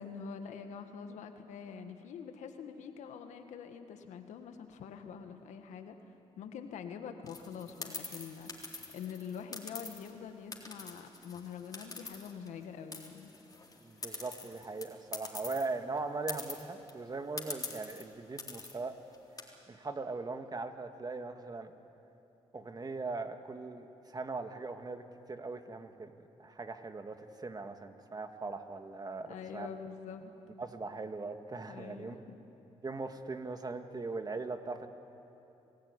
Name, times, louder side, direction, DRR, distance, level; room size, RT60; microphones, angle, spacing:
voice 1, 0.0-13.3 14.0-14.2 29.3-30.3 31.7-32.3, left 6 dB, 80° left, 7 dB, 1.6 m, -45 dB
sound 1, 7.3-10.1 10.5-12.6 12.9-15.7 16.0-16.1 16.3-16.9 17.4-18.0 18.4-18.8 19.1-19.4, left 3 dB, 30° left, 3.9 m, -44 dB
voice 2, 13.8-18.9 19.7-21.7 22.5-25.0 25.3-26.1 26.4-29.7 30.6-32.2 32.8-34.9, right 3 dB, 35° right, 7 dB, 1.8 m, -40 dB
27.0 x 16.0 x 9.7 m, 2.9 s
supercardioid pair, 65°, 12 cm